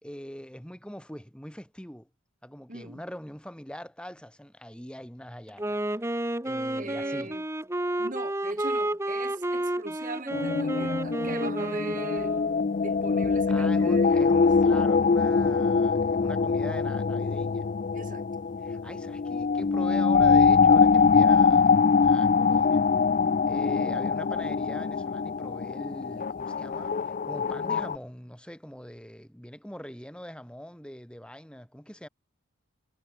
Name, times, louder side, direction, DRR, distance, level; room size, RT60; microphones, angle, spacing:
voice 1, 0.0-2.1 2.4-5.8 6.4-7.4 13.5-17.7 18.6-22.9 23.5-32.1, equal, 5° left, 2.6 m, -42 dB
voice 2, 2.7-3.0 6.8-7.4 8.0-12.5 12.8-14.4 17.9-18.2 23.8-24.1, right 2 dB, 35° right, 2.4 m, -40 dB
Wind instrument woodwind instrument, 5.5-12.7, right 1 dB, 10° right, 0.9 m, -31 dB
sound 1, 10.3-28.0, left 5 dB, 35° left, 0.3 m, -23 dB
head